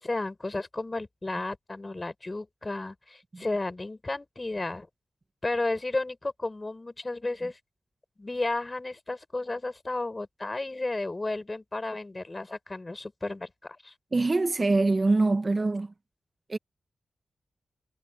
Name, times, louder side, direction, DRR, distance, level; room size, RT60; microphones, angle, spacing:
voice 1, 0.0-4.9 5.4-7.6 8.2-13.9, left 2 dB, 30° left, 6.8 m, -33 dB
voice 2, 14.1-15.9 16.5-16.6, right 3 dB, 40° right, 1.3 m, -24 dB
cardioid pair, 65°, 0 cm